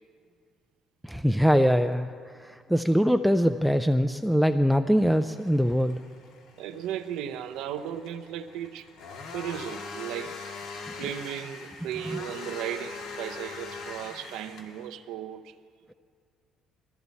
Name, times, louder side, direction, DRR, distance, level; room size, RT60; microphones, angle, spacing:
voice 1, 1.0-2.1 2.4-6.0, equal, ahead, 0.3 m, -22 dB
sound 1, 5.0-14.9, left 4 dB, 85° left, 1.9 m, -42 dB
voice 2, 6.6-8.9 9.3-10.5 11.0-15.6, right 10 dB, 90° right, 0.7 m, -36 dB
20.5 x 14.5 x 4.1 m
cardioid pair, 140°, 0 cm